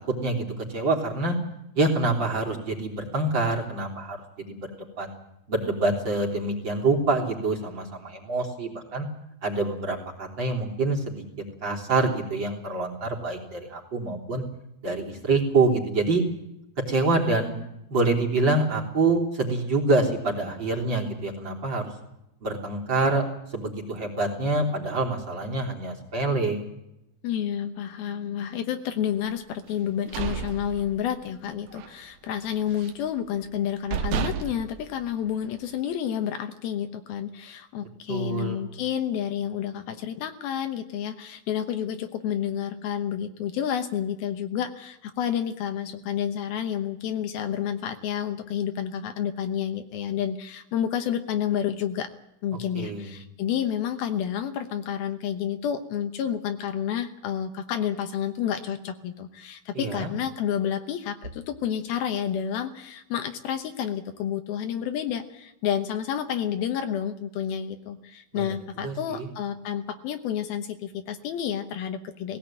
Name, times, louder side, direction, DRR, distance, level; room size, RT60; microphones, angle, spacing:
voice 1, 0.0-1.4 1.8-4.2 4.5-5.1 5.5-9.1 9.4-11.2 11.6-14.4 14.8-16.2 16.9-17.5 17.9-21.9 22.4-23.2 23.5-26.6 38.1-38.6 52.7-53.1 59.7-60.1 68.3-68.6 68.8-69.3, right 3 dB, 30° right, 0 dB, 3.8 m, -26 dB
voice 2, 27.2-52.1 52.4-72.4, left 9 dB, 75° left, 7 dB, 2.9 m, -30 dB
sound 1, 29.8-31.4 31.7-32.0 32.3-33.1 33.5-33.6 33.9-35.7, right 7 dB, 70° right, 2.8 m, -32 dB
19.0 x 17.5 x 8.8 m, 0.87 s
omnidirectional pair, 4.5 m